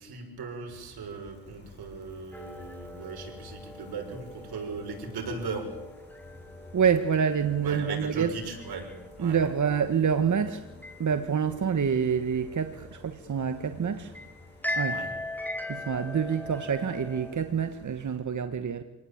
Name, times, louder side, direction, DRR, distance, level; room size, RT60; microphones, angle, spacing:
voice 1, 0.0-5.7 7.6-8.9 9.2-9.4 14.9-15.1, right 4 dB, 85° right, 6.5 m, -38 dB
Gull seagull, 0.7-18.2, left 3 dB, 30° left, 7.8 m, -52 dB
sound 1, 2.3-17.3, left 2 dB, 5° left, 5.5 m, -41 dB
voice 2, 6.7-8.3 9.2-10.7 11.0-14.2 14.8-15.0 15.7-18.8, right 7 dB, 50° right, 1.6 m, -27 dB
27.0 x 18.5 x 8.8 m
cardioid pair, 85°, 37 cm